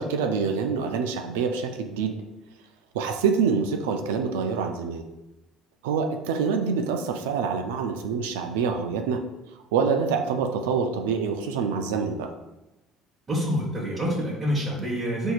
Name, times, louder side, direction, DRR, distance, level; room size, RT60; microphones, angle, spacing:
voice 1, 0.0-2.1 2.9-5.0 5.8-9.2 9.7-12.3, right 5 dB, 85° right, 4 dB, 0.3 m, -26 dB
voice 2, 13.3-15.3, equal, 35° right, -6 dB, 0.9 m, -27 dB
4.3 x 2.7 x 2.4 m, 0.99 s
supercardioid pair, 80°, 0 cm